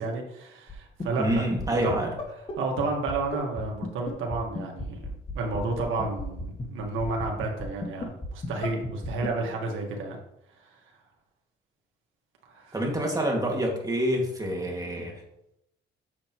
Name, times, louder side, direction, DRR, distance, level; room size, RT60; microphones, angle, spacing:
voice 1, 0.0-2.0 2.6-10.2 10.6-10.7 12.5-12.7, right 3 dB, 80° right, 0 dB, 1.6 m, -31 dB
sound 1, 0.7-0.8 1.0-1.3 1.6-1.7 1.9-2.0 2.2-2.3 2.5-2.6 2.8-2.9 3.1-9.3, left 3 dB, 30° left, 1.8 m, -33 dB
voice 2, 1.2-2.1 12.7-15.1, equal, 20° right, 0 dB, 2.1 m, -27 dB
8.1 x 6.7 x 3.1 m, 0.82 s
cardioid pair, 90°, 20 cm